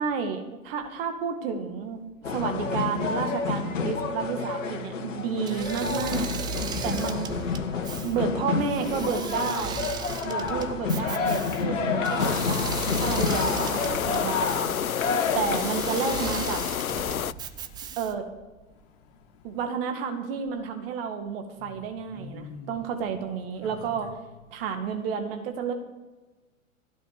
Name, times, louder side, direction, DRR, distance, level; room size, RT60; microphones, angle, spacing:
voice 1, 0.0-2.0 2.3-6.3 6.8-7.4 8.0-9.8 10.2-14.7 15.3-16.6 18.0-18.3 19.4-24.1 24.5-25.7, right 6 dB, 45° right, 2.1 m, -31 dB
sound 1, 2.2-15.6, left 5 dB, 65° left, 2.0 m, -29 dB
Engine / Mechanisms, 5.4-18.3, right 6 dB, 10° right, 0.5 m, -37 dB
voice 2, 10.0-10.7 17.1-18.0 18.7-19.6 21.6-22.9 23.5-24.1 24.5-24.6, left 5 dB, 40° left, 4.0 m, -49 dB
sound 2, 12.2-17.3, left 9 dB, 80° left, 0.6 m, -29 dB
15.5 x 8.6 x 6.8 m
figure-of-eight pair, 105°, 41 cm